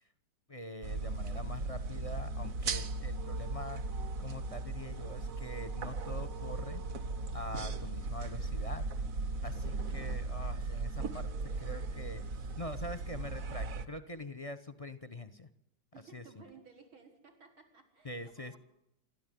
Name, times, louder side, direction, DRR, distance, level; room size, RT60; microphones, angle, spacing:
voice 1, 0.5-3.8 4.2-6.8 7.3-8.9 9.4-15.5 16.1-16.4 18.0-18.6, left 1 dB, 30° left, 13 dB, 0.6 m, -44 dB
sound 1, 0.8-13.9, right 3 dB, 45° right, 1.5 m, -37 dB
sound 2, 2.5-8.4, right 11 dB, 65° right, 1.8 m, -53 dB
voice 2, 15.9-18.6, right 5 dB, 85° right, 2 dB, 5.9 m, -57 dB
27.5 x 13.0 x 9.3 m, 0.78 s
omnidirectional pair, 2.2 m